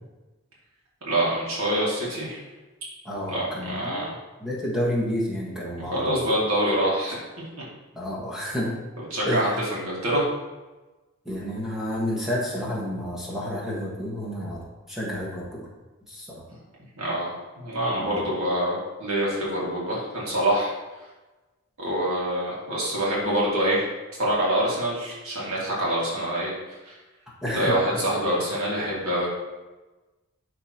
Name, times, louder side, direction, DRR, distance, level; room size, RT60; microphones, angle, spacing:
voice 1, 1.1-2.4 3.3-4.2 5.8-7.2 9.1-10.3 17.0-21.0 21.8-23.9 24.2-27.0 27.5-29.3, right 1 dB, 85° right, -6 dB, 2.3 m, -26 dB
voice 2, 3.0-4.1 4.4-6.2 7.9-8.8 9.3-9.6 11.2-15.7 16.1-16.4 17.9-18.2 27.4-27.7, equal, ahead, -5 dB, 1.4 m, -30 dB
10.5 x 3.8 x 3.0 m, 1.1 s
head